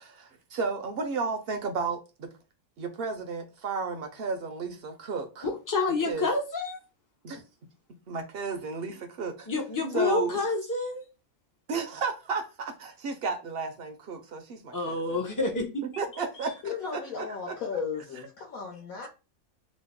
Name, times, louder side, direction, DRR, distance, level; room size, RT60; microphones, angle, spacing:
voice 1, 0.0-2.3 2.8-5.5 6.1-6.3 7.2-7.4 8.1-9.5 9.9-10.4 11.7-15.2 16.0-17.5, right 4 dB, 60° right, 0.6 m, -33 dB
voice 2, 5.4-6.8 9.5-11.0 14.7-15.8, left 3 dB, 30° left, 0.4 m, -28 dB
voice 3, 16.6-19.1, left 6 dB, 80° left, 1.2 m, -35 dB
3.0 x 2.0 x 3.5 m
omnidirectional pair, 1.5 m